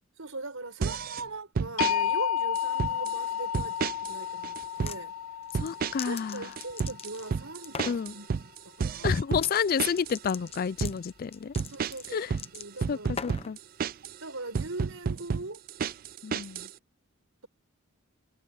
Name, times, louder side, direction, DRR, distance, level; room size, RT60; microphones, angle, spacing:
voice 1, 0.2-5.1 6.1-8.3 8.6-9.2 11.7-13.3 14.2-15.6, right 2 dB, 80° right, 5.2 m, -40 dB
sound 1, 0.8-1.2 1.6-2.0 2.6-3.2 3.5-4.2 4.4-5.0 5.5-6.2 6.4-10.2 10.5-11.0 11.6-14.2 14.5-16.7, right 5 dB, 45° right, 0.3 m, -31 dB
sound 2, 1.8-7.8, left 9 dB, 85° left, 0.6 m, -32 dB
sound 3, 4.6-5.0 5.4-7.3 7.6-8.0 9.3-9.5 9.8-13.5, left 6 dB, 30° left, 0.8 m, -40 dB
voice 2, 5.5-6.5 7.9-8.1 9.0-11.5 12.1-12.3 12.9-13.6 16.2-16.7, left 6 dB, 45° left, 0.3 m, -30 dB
head